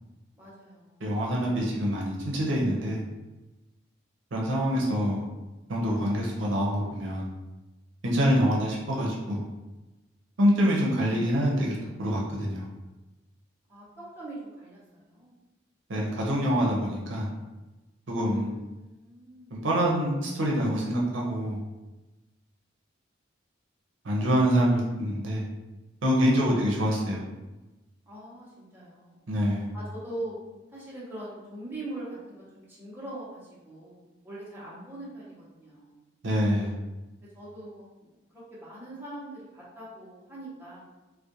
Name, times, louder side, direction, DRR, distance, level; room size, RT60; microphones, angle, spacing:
voice 1, 0.4-1.0 13.7-15.3 18.5-19.5 28.1-29.2 29.7-30.4 30.7-36.0 37.3-40.8, right 1 dB, 10° right, -9 dB, 0.7 m, -42 dB
voice 2, 1.0-3.0 4.3-5.3 5.7-7.3 8.0-9.4 10.4-12.7 15.9-17.3 18.1-18.5 19.5-21.6 24.0-25.4 26.0-27.2 29.3-29.7 36.2-36.8, equal, 80° right, -3 dB, 0.6 m, -25 dB
2.4 x 2.1 x 2.8 m, 1.1 s
head